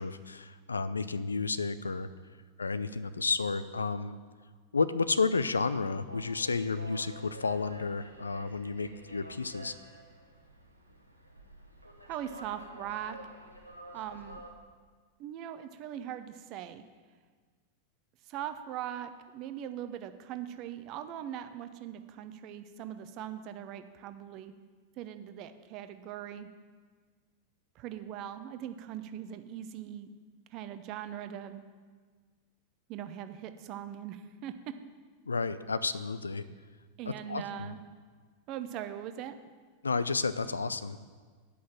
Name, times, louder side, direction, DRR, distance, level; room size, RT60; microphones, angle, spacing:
voice 1, 0.0-2.1 2.6-4.2 4.7-9.8 35.3-36.4 37.3-37.7 39.8-41.0, left 4 dB, 75° left, 13 dB, 0.4 m, -31 dB
sound 1, 6.1-14.5, right 1 dB, 90° right, 1.1 m, -50 dB
voice 2, 12.0-13.2 13.9-14.4 15.2-16.8 18.3-24.5 25.0-26.5 27.8-30.1 30.5-31.6 32.9-34.5 37.0-37.8 38.5-39.4, right 10 dB, 40° right, 10 dB, 0.6 m, -40 dB
8.4 x 5.5 x 7.6 m, 1.5 s
figure-of-eight pair, 90°, 0 cm